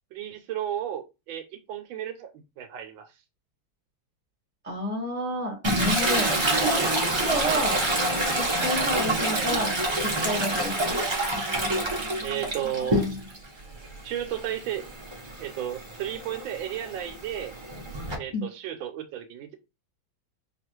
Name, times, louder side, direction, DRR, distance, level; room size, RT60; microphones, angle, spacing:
voice 1, 0.1-3.1 6.7-7.0 7.4-7.7 9.3-9.5 12.2-13.0 14.0-14.8 15.4-17.5 18.1-19.5, right 10 dB, 85° right, 7 dB, 1.4 m, -33 dB
voice 2, 4.6-7.8 8.3-9.7 10.0-11.0 18.3-18.4, equal, 5° right, -1 dB, 1.2 m, -30 dB
Toilet flush, 5.6-13.4 13.8-18.1, right 1 dB, 40° right, 0.3 m, -27 dB
4.7 x 2.4 x 3.0 m, 0.26 s
omnidirectional pair, 2.2 m